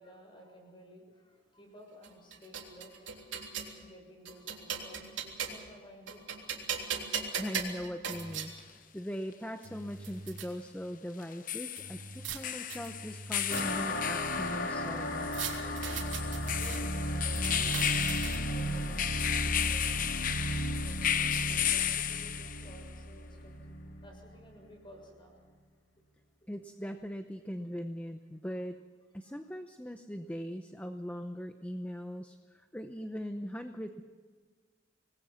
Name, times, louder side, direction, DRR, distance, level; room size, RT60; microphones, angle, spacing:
voice 1, 0.0-3.5 3.8-6.5 11.7-11.8 16.4-18.0 18.4-20.0 20.5-23.6 24.0-25.4 29.2-29.3, equal, 25° left, 2 dB, 6.7 m, -54 dB
sound 1, 2.0-3.7 4.3-5.7 6.1-8.5 9.3-9.4 9.6-10.5 11.8-12.4 12.7-14.0 15.3-16.8 17.3-18.6, right 6 dB, 90° right, 3.4 m, -39 dB
voice 2, 7.4-15.5 26.5-28.8 29.1-34.0, equal, 10° left, 7 dB, 0.8 m, -40 dB
sound 2, 8.6-8.7 11.2-22.8, left 10 dB, 45° left, 0.9 m, -34 dB
sound 3, 13.5-24.5, equal, 65° left, 2.7 m, -35 dB
26.5 x 20.5 x 5.8 m, 1.5 s
head